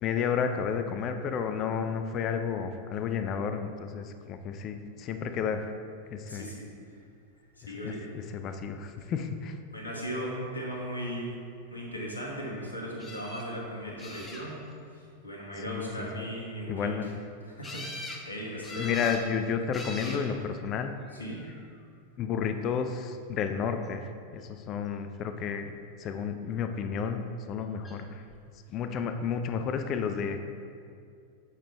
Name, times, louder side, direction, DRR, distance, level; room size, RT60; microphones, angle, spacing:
voice 1, 0.0-5.7 6.1-6.5 7.6-9.5 15.7-16.1 16.7-17.1 18.5-20.9 22.2-27.2 27.5-28.2 28.7-30.4, left 6 dB, 35° left, 7 dB, 0.4 m, -32 dB
voice 2, 6.3-6.6 7.7-8.1 9.0-9.1 9.7-11.3 11.7-14.6 15.2-17.1 17.4-19.0 20.0-20.2 21.1-21.4, equal, 80° left, -2 dB, 1.3 m, -37 dB
sound 1, 13.0-13.4 14.0-14.7 17.6-18.2 18.6-19.2 19.7-20.2 21.1-21.6 27.8-28.0 28.3-28.4, left 1 dB, 15° left, 0.9 m, -41 dB
8.1 x 5.8 x 3.2 m, 2.4 s
figure-of-eight pair, 90°, 0 cm